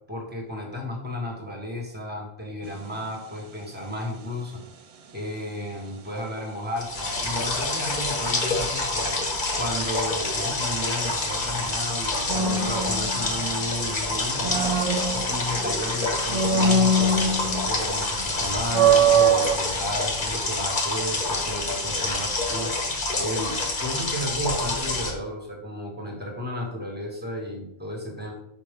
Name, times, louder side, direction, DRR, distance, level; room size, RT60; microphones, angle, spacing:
voice 1, 0.1-4.6 5.1-9.2 9.6-14.8 15.1-22.7 23.2-28.3, equal, 10° right, 0 dB, 1.4 m, -33 dB
sound 1, 2.6-3.0 12.3-13.7 14.1-15.8 16.3-17.9 18.2-18.3 18.7-19.6, right 4 dB, 50° right, 0.4 m, -22 dB
sound 2, 6.8-25.1, left 2 dB, 50° left, 1.2 m, -27 dB
5.9 x 4.4 x 3.7 m, 0.77 s
omnidirectional pair, 1.1 m